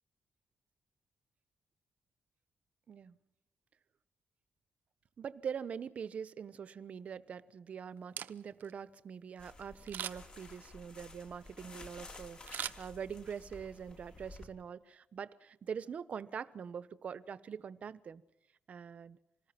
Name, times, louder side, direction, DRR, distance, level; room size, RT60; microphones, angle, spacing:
voice 1, 2.9-3.2 5.2-18.2 18.7-19.2, right 7 dB, 45° right, 15 dB, 1.1 m, -43 dB
Camera, 8.0-8.7 9.9-10.4 12.5-13.4 13.8-13.9, right 10 dB, 70° right, 0.9 m, -42 dB
sound 1, 9.4-14.4, left 2 dB, 30° left, 4.1 m, -53 dB
27.5 x 19.5 x 6.0 m, 0.87 s
wide cardioid pair, 160°, 3 cm